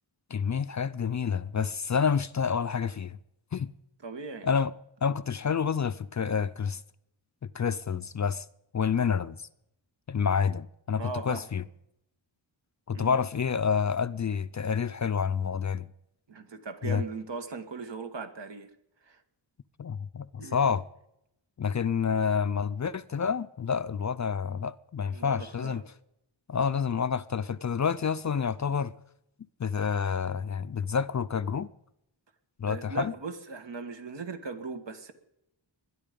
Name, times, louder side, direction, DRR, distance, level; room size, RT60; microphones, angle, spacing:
voice 1, 0.3-3.2 3.5-3.7 4.4-4.7 5.0-6.8 7.5-8.5 8.7-9.5 10.1-11.6 12.9-15.9 16.8-17.0 19.8-20.8 21.6-25.8 26.5-28.9 29.6-31.7 32.6-33.1, left 6 dB, 40° left, 0.5 m, -28 dB
voice 2, 4.0-4.5 11.0-11.4 12.9-13.2 16.3-18.7 19.1-19.2 20.4-20.7 25.1-25.8 32.6-35.1, right 4 dB, 65° right, 1.8 m, -39 dB
21.0 x 11.0 x 5.3 m
wide cardioid pair, 130°, 46 cm